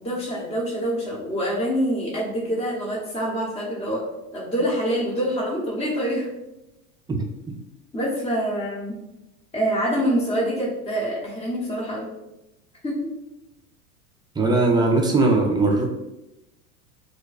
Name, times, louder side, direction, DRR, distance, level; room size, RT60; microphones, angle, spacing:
voice 1, 0.0-4.0 4.3-6.3 7.9-8.9 9.5-12.0 12.8-13.0, equal, 15° left, -5 dB, 0.8 m, -25 dB
voice 2, 14.4-15.9, right 2 dB, 10° right, 1 dB, 0.4 m, -19 dB
2.5 x 2.2 x 3.9 m, 0.94 s
hypercardioid pair, 90°, 44 cm